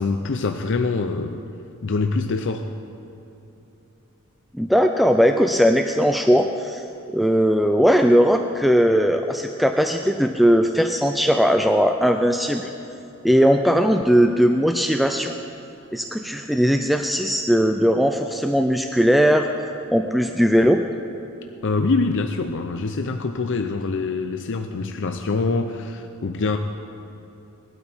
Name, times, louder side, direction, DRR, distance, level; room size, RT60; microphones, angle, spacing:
voice 1, 0.0-1.4 1.8-2.7 21.6-26.6, left 3 dB, 60° left, 6 dB, 0.6 m, -24 dB
voice 2, 4.5-6.8 7.1-12.7 13.2-15.3 15.9-19.5 19.9-20.8, equal, ahead, 5 dB, 0.4 m, -18 dB
19.5 x 12.5 x 4.4 m, 2.9 s
head